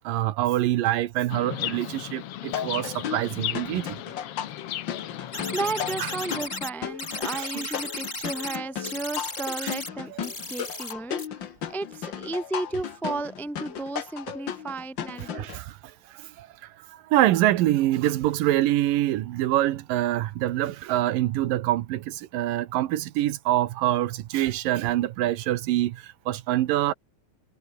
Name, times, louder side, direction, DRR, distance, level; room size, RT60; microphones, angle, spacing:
voice 1, 0.0-4.0 6.0-6.1 7.3-7.7 9.6-9.7 10.1-10.2 15.3-15.8 16.1-16.5 16.9-26.9, right 14 dB, 75° right, 2.6 m, -25 dB
Chirp tweet, 1.3-6.5, left 12 dB, 80° left, 1.3 m, -36 dB
sound 1, 2.5-15.6, left 9 dB, 65° left, 1.2 m, -35 dB
sound 2, 5.3-6.7 7.0-8.6 8.8-9.9 10.2-10.9 11.2-11.3, left 2 dB, 20° left, 4.3 m, -35 dB
voice 2, 5.5-11.4 11.7-15.5, right 3 dB, ahead, 1.0 m, -33 dB
omnidirectional pair, 4.0 m